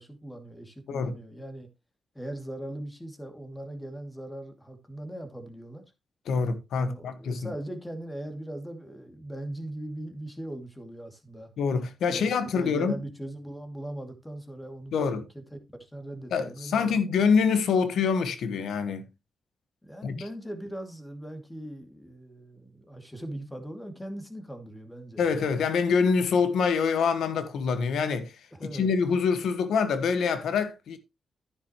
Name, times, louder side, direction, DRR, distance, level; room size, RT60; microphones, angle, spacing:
voice 1, 0.0-1.7 2.1-5.8 6.8-11.5 12.1-17.3 19.8-25.5 28.5-28.9, right 1 dB, 10° left, 2.5 m, -40 dB
voice 2, 6.3-7.5 11.6-13.0 14.9-15.2 16.3-19.1 20.0-20.2 25.2-28.3 28.7-31.0, left 5 dB, 80° left, 1.4 m, -25 dB
10.5 x 9.7 x 3.1 m
cardioid pair, 70°, 0 cm